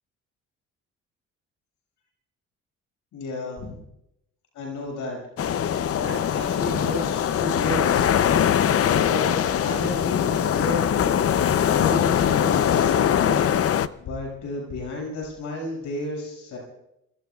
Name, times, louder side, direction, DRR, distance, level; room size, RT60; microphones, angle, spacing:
voice 1, 3.1-3.8 4.5-5.2 5.9-8.0 8.9-11.3 11.7-13.6 14.0-16.6, left 2 dB, 80° left, -2 dB, 6.5 m, -32 dB
sound 1, 5.4-13.9, left 9 dB, 50° left, 0.7 m, -22 dB
26.0 x 22.5 x 2.4 m, 0.82 s
cardioid pair, 90°, 30 cm